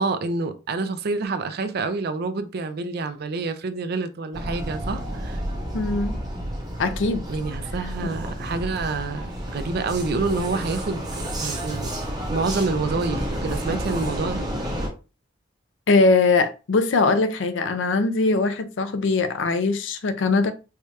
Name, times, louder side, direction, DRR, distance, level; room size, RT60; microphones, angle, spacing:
voice 1, 0.0-5.4 7.3-11.9 12.3-14.5, right 3 dB, 55° right, 0.5 m, -27 dB
Vehicle, 4.3-14.9, equal, 20° right, 1.0 m, -30 dB
voice 2, 5.7-6.2 6.8-7.2 8.0-8.1 15.9-20.5, left 3 dB, 80° left, 0.5 m, -21 dB
4.8 x 2.3 x 2.8 m
head